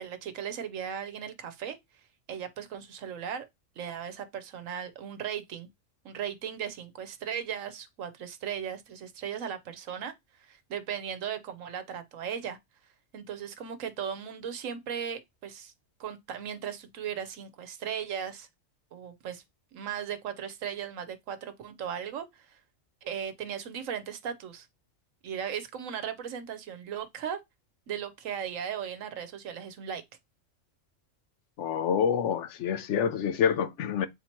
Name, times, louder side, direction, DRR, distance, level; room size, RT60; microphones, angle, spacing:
voice 1, 0.0-1.8 2.3-3.5 3.8-5.7 6.0-12.6 13.1-15.7 16.0-18.5 18.9-19.4 19.7-22.6 23.0-24.7 25.2-27.4 27.9-30.0, right 8 dB, 80° right, 1.1 m, -37 dB
voice 2, 31.6-34.1, left 7 dB, 70° left, 0.9 m, -27 dB
7.7 x 2.9 x 4.4 m
omnidirectional pair, 1.3 m